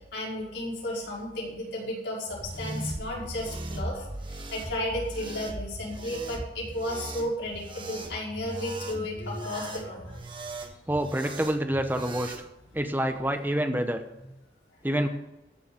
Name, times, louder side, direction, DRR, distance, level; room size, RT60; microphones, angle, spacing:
voice 1, 0.1-4.0 4.3-10.2, left 1 dB, 85° left, -4 dB, 5.2 m, -33 dB
sound 1, 2.3-12.4, right 1 dB, 30° right, 1.4 m, -38 dB
voice 2, 10.9-12.3 12.7-14.0 14.8-15.1, right 1 dB, 10° right, 7 dB, 0.9 m, -27 dB
14.0 x 7.1 x 7.1 m, 0.93 s
head